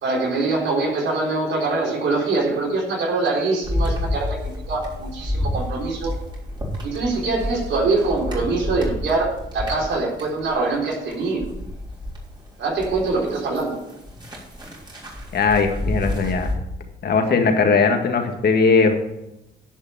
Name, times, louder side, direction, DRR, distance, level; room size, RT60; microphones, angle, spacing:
voice 1, 0.0-4.4 4.7-6.1 6.8-11.5 12.6-13.9, right 3 dB, 65° right, -2 dB, 3.9 m, -23 dB
sound 1, 3.6-12.2 12.6-16.5, left 1 dB, 20° right, 3.6 m, -29 dB
voice 2, 15.3-16.5 17.0-18.9, left 4 dB, 55° left, 4 dB, 1.9 m, -19 dB
10.5 x 5.6 x 7.4 m, 0.90 s
cardioid pair, 90°, 20 cm